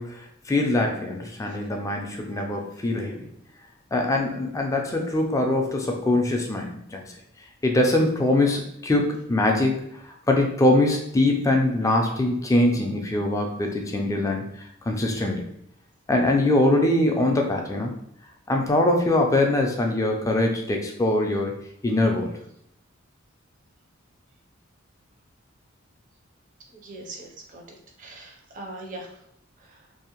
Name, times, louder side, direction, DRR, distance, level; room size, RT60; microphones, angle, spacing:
voice 1, 0.0-3.3 3.9-7.2 7.6-14.4 14.9-15.5 16.1-17.9 18.5-21.6 21.8-22.4, left 1 dB, 15° left, 2 dB, 0.3 m, -23 dB
voice 2, 26.7-29.2 29.6-29.8, right 2 dB, 40° right, 1 dB, 0.5 m, -41 dB
2.6 x 2.0 x 2.8 m, 0.74 s
head